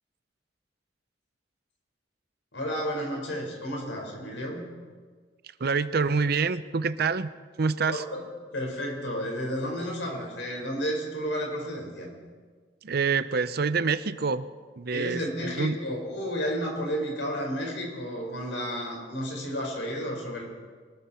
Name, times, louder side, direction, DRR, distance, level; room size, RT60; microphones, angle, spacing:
voice 1, 2.5-4.6 7.9-8.2 8.5-12.1 14.9-20.4, equal, 85° left, 0 dB, 5.1 m, -32 dB
voice 2, 5.6-7.3 7.6-8.0 12.8-14.5 14.8-15.8, right 5 dB, 60° right, 14 dB, 0.6 m, -26 dB
23.0 x 14.0 x 4.4 m, 1.5 s
head